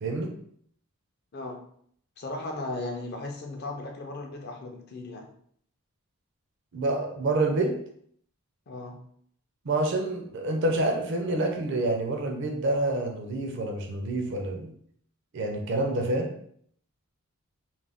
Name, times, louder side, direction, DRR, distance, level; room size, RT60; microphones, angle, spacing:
voice 1, 0.0-0.3 6.7-7.8 9.6-14.7 15.3-16.3, right 2 dB, 55° right, 3 dB, 0.5 m, -27 dB
voice 2, 1.3-1.6 2.2-5.3 8.7-9.0, left 2 dB, 45° left, 2 dB, 0.5 m, -36 dB
2.5 x 2.2 x 3.4 m, 0.63 s
head